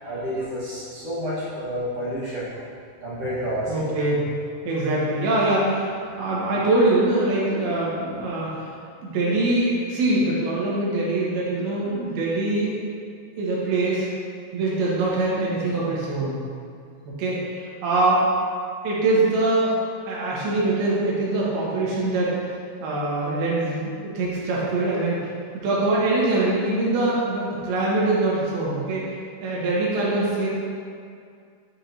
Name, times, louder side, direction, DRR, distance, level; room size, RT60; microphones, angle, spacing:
voice 1, 0.0-2.5 3.0-3.7, equal, 60° right, -9 dB, 1.7 m, -29 dB
voice 2, 3.7-4.2 4.6-8.7 9.0-12.8 13.4-14.1 14.5-16.4 17.1-18.2 18.8-19.8 20.1-22.4 22.8-25.3 25.6-29.0 29.4-30.5, right 2 dB, 85° right, -7 dB, 3.1 m, -23 dB
8.7 x 4.4 x 2.7 m, 2.3 s
omnidirectional pair, 4.3 m